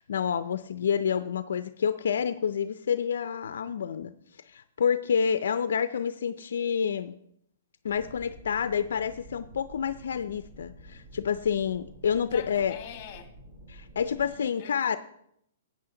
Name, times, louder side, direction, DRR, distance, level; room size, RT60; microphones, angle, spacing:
voice 1, 0.0-4.1 4.5-7.1 7.8-12.8 13.7-15.0, left 7 dB, 80° left, 0.5 m, -28 dB
sound 1, 7.9-14.3, right 1 dB, 55° right, 4.6 m, -50 dB
voice 2, 12.3-13.3 14.0-15.0, left 8 dB, 35° left, 1.5 m, -45 dB
12.0 x 8.7 x 3.8 m
hypercardioid pair, 150°, 0 cm